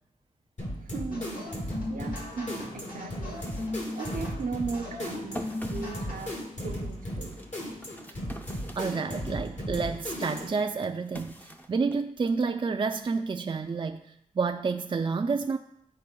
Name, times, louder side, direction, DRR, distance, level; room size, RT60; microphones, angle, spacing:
sound 1, 0.6-10.7, equal, 55° left, 2.6 m, -36 dB
voice 1, 0.8-1.5 1.9-3.4 4.0-7.4, right 4 dB, 80° right, 4 dB, 0.7 m, -37 dB
sound 2, 1.1-6.4, left 2 dB, 85° left, 1.5 m, -39 dB
sound 3, 3.0-9.4 9.8-12.5, equal, 10° left, 0.6 m, -46 dB
voice 2, 8.8-15.6, right 4 dB, 35° right, 5 dB, 0.3 m, -29 dB
12.0 x 4.2 x 2.3 m, 0.79 s
cardioid pair, 55°, 14 cm